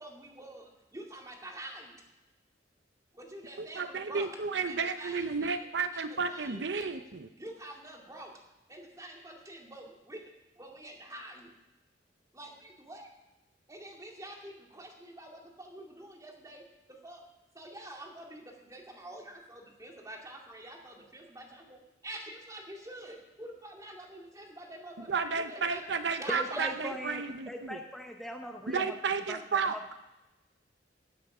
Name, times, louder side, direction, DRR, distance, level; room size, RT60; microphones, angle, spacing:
voice 1, 0.0-2.0 3.1-4.4 4.7-5.7 5.9-7.1 7.3-8.4 8.7-10.2 10.6-11.5 12.3-13.1 13.7-17.2 17.5-25.9 26.2-27.2, right 1 dB, 20° right, 0 dB, 2.3 m, -47 dB
voice 2, 3.6-7.3 25.1-27.8 28.7-29.8, right 5 dB, 70° right, 9 dB, 0.7 m, -32 dB
voice 3, 26.3-28.9 29.3-29.4 29.7-29.8, equal, ahead, 3 dB, 0.7 m, -40 dB
16.5 x 8.4 x 6.1 m, 1.0 s
head